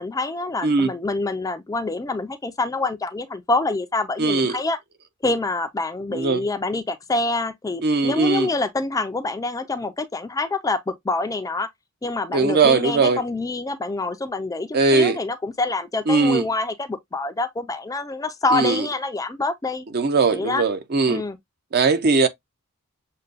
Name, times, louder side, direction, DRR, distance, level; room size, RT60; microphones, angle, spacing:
voice 1, 0.0-4.8 5.2-11.7 12.0-19.9 20.3-20.6 21.1-21.4, left 3 dB, 15° left, 0.4 m, -26 dB
voice 2, 4.2-4.6 6.1-6.4 7.8-8.5 12.3-13.2 14.7-15.2 16.1-16.4 18.5-18.9 19.9-21.2 21.7-22.3, right 4 dB, 45° right, 0.6 m, -19 dB
6.6 x 2.2 x 2.4 m
head